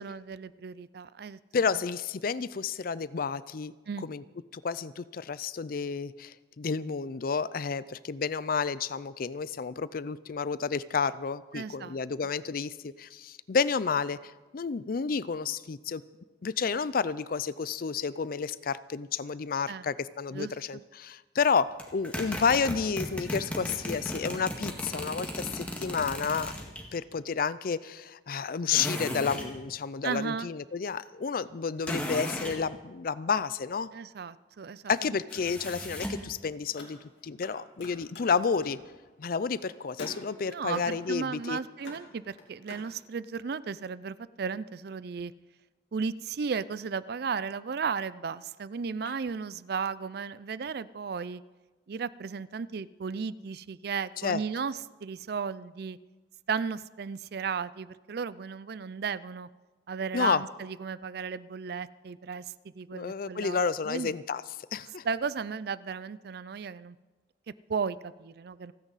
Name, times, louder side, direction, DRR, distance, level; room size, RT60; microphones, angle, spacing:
voice 1, 0.0-1.4 3.9-4.1 11.5-12.0 19.7-19.9 20.3-20.8 30.0-30.5 33.9-34.8 40.5-45.3 45.9-51.4 51.9-56.0 56.5-59.5 59.9-64.1 65.0-67.0 67.7-68.7, right 5 dB, 60° right, 17 dB, 0.4 m, -35 dB
voice 2, 1.5-3.7 4.0-4.2 4.5-16.0 16.4-26.5 26.9-33.9 34.9-38.8 39.2-41.6 54.2-54.4 60.1-60.4 62.9-64.4 64.7-65.0, left 5 dB, 55° left, 17 dB, 0.5 m, -30 dB
sound 1, 21.8-26.8 28.7-29.5 31.8-32.6 35.3-36.3, left 1 dB, 10° left, 1.9 m, -35 dB
Car, 36.6-37.5 37.8-42.9, left 2 dB, 90° left, 3.1 m, -49 dB
29.0 x 9.7 x 4.1 m, 1.2 s
head